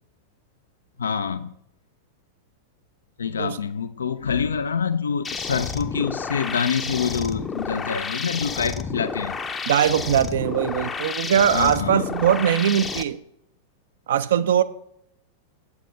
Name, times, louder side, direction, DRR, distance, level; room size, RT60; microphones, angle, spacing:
voice 1, 1.0-1.5 3.2-9.4 11.5-12.1, left 6 dB, 70° left, 11 dB, 0.3 m, -26 dB
sound 1, 5.2-13.0, left 4 dB, 15° left, 0.5 m, -31 dB
voice 2, 9.7-13.2 14.1-14.6, right 9 dB, 60° right, 14 dB, 0.4 m, -21 dB
8.1 x 7.1 x 3.8 m, 0.76 s
figure-of-eight pair, 90°, 0 cm